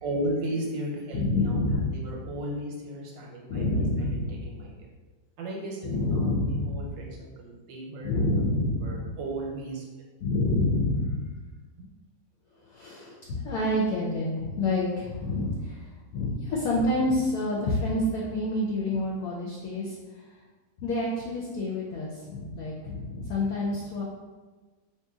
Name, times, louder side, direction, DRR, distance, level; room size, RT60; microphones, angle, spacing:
voice 1, 0.0-1.6 1.9-4.9 5.4-8.5 8.8-9.8, right 1 dB, 90° right, -2 dB, 1.5 m, -35 dB
voice 2, 1.1-2.1 3.5-4.5 5.8-6.9 8.0-9.1 10.2-11.3 12.6-15.8 16.1-20.0 20.8-24.0, left 2 dB, 70° left, -4 dB, 1.0 m, -28 dB
2.9 x 2.8 x 3.5 m, 1.3 s
omnidirectional pair, 2.0 m